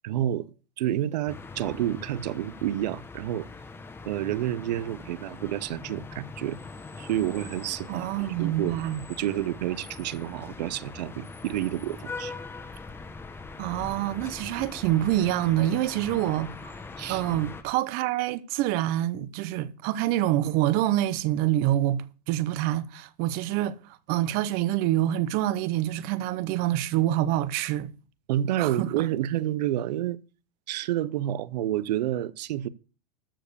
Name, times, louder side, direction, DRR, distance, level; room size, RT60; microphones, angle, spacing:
voice 1, 0.0-0.5 0.8-3.5 4.0-6.6 7.0-8.1 8.4-8.8 9.2-12.3 17.0-17.2 28.3-30.2 30.7-32.7, right 12 dB, 80° right, 0.8 m, -29 dB
sound 1, 1.3-17.6, left 4 dB, 10° left, 1.0 m, -42 dB
voice 2, 7.9-9.1 13.6-16.7 17.1-27.9 28.6-29.0, right 13 dB, 45° right, 0.8 m, -26 dB
13.0 x 5.0 x 6.8 m
supercardioid pair, 145°, 21 cm